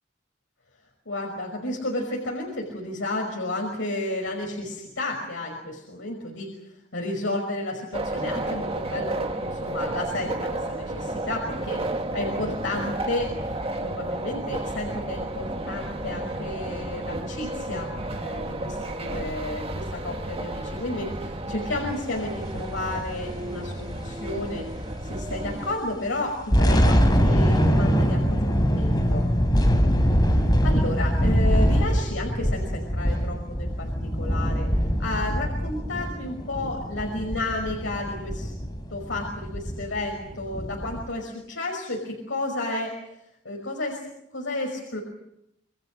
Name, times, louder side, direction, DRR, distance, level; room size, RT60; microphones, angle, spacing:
voice 1, 1.1-6.5 6.9-11.8 12.1-13.3 13.8-17.9 18.2-24.6 25.0-29.2 30.3-34.7 35.0-38.5 38.9-43.0 43.4-44.0 44.3-45.0, left 2 dB, 90° left, 1 dB, 5.7 m, -32 dB
sound 1, 7.9-25.8, right 1 dB, 30° right, 2.0 m, -32 dB
sound 2, 22.5-25.3 25.6-25.7 26.2-41.0, equal, 25° left, 3.8 m, -23 dB
28.5 x 24.0 x 6.5 m, 0.82 s
head